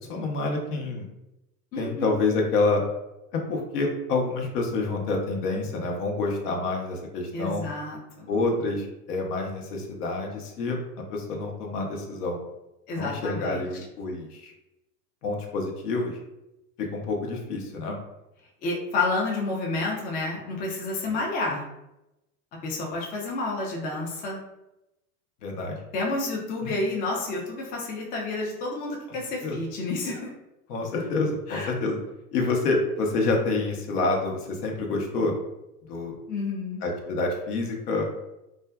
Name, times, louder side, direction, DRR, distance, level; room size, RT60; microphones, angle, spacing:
voice 1, 0.1-1.1 1.8-2.8 3.3-7.6 8.3-10.8 11.1-12.4 12.9-14.5 15.2-16.2 16.8-18.0 25.4-25.8 26.6-26.7 29.4-29.6 30.7-32.0 32.3-35.3 35.9-36.2 36.8-38.0, left 3 dB, 70° left, 1 dB, 0.8 m, -27 dB
voice 2, 1.7-2.1 7.3-8.3 12.9-13.6 18.6-21.6 22.6-24.4 25.9-30.3 31.5-31.7 36.3-36.8, left 2 dB, 20° left, -2 dB, 0.3 m, -30 dB
2.5 x 2.2 x 2.2 m, 0.92 s
hypercardioid pair, 90°, 48 cm